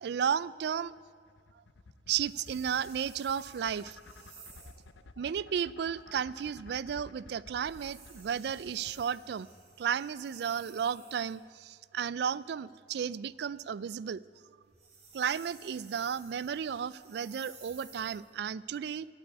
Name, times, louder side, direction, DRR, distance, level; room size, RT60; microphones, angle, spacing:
voice 1, 0.0-0.9 2.1-4.0 4.6-4.7 5.2-9.5 9.8-14.2 15.1-19.1, right 8 dB, 60° right, 20 dB, 0.3 m, -33 dB
sound 1, 0.9-9.1, left 3 dB, 75° left, 0.6 m, -52 dB
sound 2, 2.2-4.8 7.6-11.4 14.6-18.3, right 4 dB, 40° right, 3.4 m, -55 dB
12.0 x 8.4 x 9.5 m, 2.1 s
head